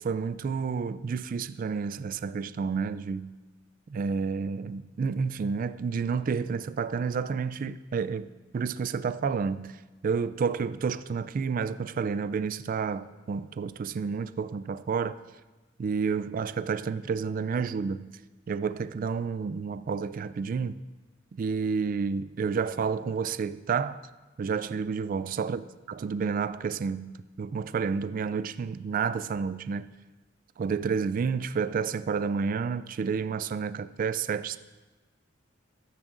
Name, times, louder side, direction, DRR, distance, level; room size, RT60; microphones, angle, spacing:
voice 1, 0.0-3.4 3.9-8.3 8.5-9.8 10.0-15.1 15.8-18.2 18.5-20.8 21.3-24.0 24.4-25.6 26.0-29.8 30.6-34.6, right 5 dB, 45° right, 0.3 m, -30 dB
15.0 x 12.5 x 2.5 m
head